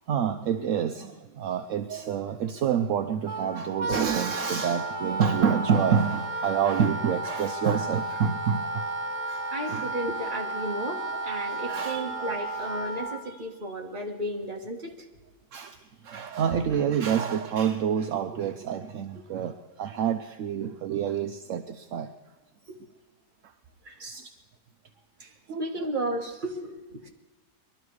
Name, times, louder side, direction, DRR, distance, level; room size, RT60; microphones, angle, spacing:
voice 1, 0.1-8.9 9.3-9.9 11.5-12.1 15.5-22.1 24.0-24.3 25.2-25.7, right 7 dB, 65° right, 8 dB, 0.8 m, -28 dB
Wind instrument woodwind instrument, 3.3-13.2, right 2 dB, 45° right, 1.4 m, -33 dB
voice 2, 9.5-15.1 18.6-18.7 19.1-19.2 22.7-22.8 23.8-24.1 25.6-27.1, right 1 dB, 30° right, 2 dB, 1.6 m, -34 dB
21.5 x 12.5 x 4.8 m, 1.2 s
omnidirectional pair, 1.9 m